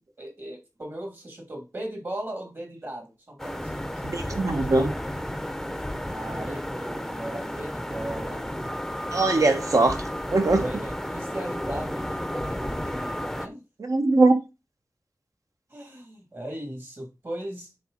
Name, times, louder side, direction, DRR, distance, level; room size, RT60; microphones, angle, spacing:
voice 1, 0.2-4.0 4.4-4.7 6.0-8.6 9.4-9.5 10.5-13.6 15.7-17.7, right 1 dB, 45° right, 2.6 m, -37 dB
sound 1, 3.4-13.5, equal, 5° left, 0.7 m, -32 dB
voice 2, 4.0-4.9 9.1-10.0 10.3-10.6 13.8-14.4, right 2 dB, 60° right, 1.2 m, -21 dB
9.3 x 3.9 x 3.9 m
wide cardioid pair, 80°, 6 cm